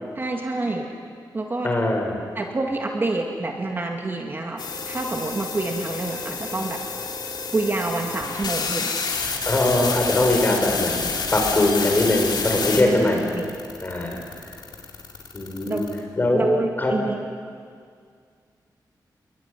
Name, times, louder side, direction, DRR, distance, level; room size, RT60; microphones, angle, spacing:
voice 1, 0.2-0.9 1.3-1.7 2.3-4.6 4.9-6.8 7.5-8.9 12.8-13.5 15.7-15.9 16.3-17.2, right 2 dB, 30° right, 1 dB, 2.2 m, -27 dB
voice 2, 1.6-2.2 9.5-11.0 11.3-13.2 13.8-14.2 15.3-15.8 16.2-16.4 16.8-16.9, left 2 dB, 25° left, 1 dB, 5.8 m, -21 dB
sound 1, 4.6-16.0, left 4 dB, 75° left, 3.9 m, -29 dB
27.5 x 22.5 x 9.8 m, 2.1 s
wide cardioid pair, 180°, 7 cm